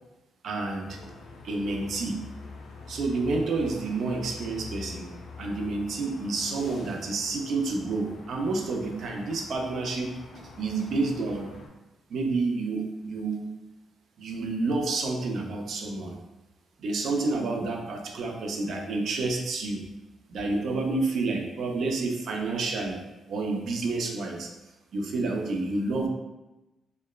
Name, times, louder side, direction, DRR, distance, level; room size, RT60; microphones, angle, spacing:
voice 1, 0.4-1.0 1.4-2.2 2.9-5.1 5.4-10.2 10.6-11.5 12.1-13.5 14.2-16.2 16.8-19.9 20.3-23.0 23.3-24.5 24.9-26.1, right 3 dB, 60° right, 2 dB, 0.3 m, -29 dB
sound 1, 0.8-11.7, left 4 dB, 75° left, 0.3 m, -45 dB
2.8 x 2.1 x 2.2 m, 1.0 s
cardioid pair, 130°, 0 cm